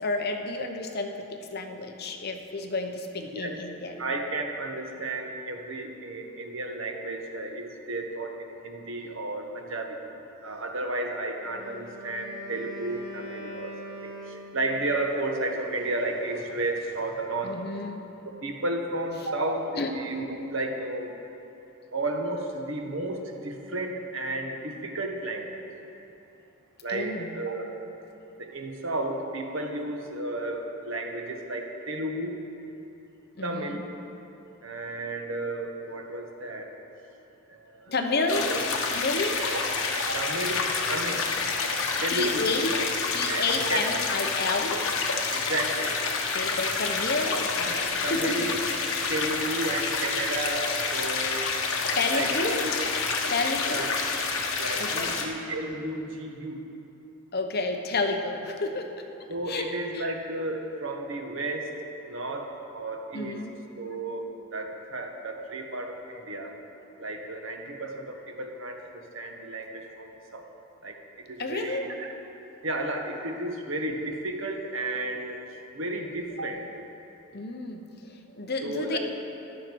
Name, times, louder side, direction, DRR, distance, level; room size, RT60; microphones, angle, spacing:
voice 1, 0.0-4.0 9.0-9.1 17.4-18.0 19.8-19.9 26.9-27.4 33.4-33.8 37.9-38.5 38.9-39.4 42.1-42.7 43.1-44.9 46.3-48.5 51.9-52.6 53.3-53.9 54.8-55.2 57.3-59.0 59.5-60.0 63.1-63.6 71.4-71.8 77.3-79.0, left 3 dB, 45° left, 4 dB, 0.9 m, -30 dB
voice 2, 4.0-10.0 10.4-17.6 18.4-21.1 21.9-25.6 26.8-27.7 28.4-32.4 33.4-34.0 34.6-36.7 37.5-37.9 38.3-38.6 39.4-39.7 40.1-41.3 42.0-42.5 43.2-44.0 45.3-46.0 48.0-48.6 49.1-51.5 52.1-52.7 53.6-53.9 54.6-56.6 59.3-61.7 62.0-63.4 63.8-66.6 67.0-70.5 70.8-72.1 72.6-75.4 75.7-76.6 78.6-79.0, right 2 dB, 60° right, 3 dB, 1.3 m, -33 dB
Wind instrument woodwind instrument, 11.4-14.9, right 1 dB, 10° right, 2.1 m, -42 dB
sound 1, 38.3-55.3, left 4 dB, 70° left, 1.3 m, -28 dB
15.0 x 11.5 x 4.6 m, 2.9 s
head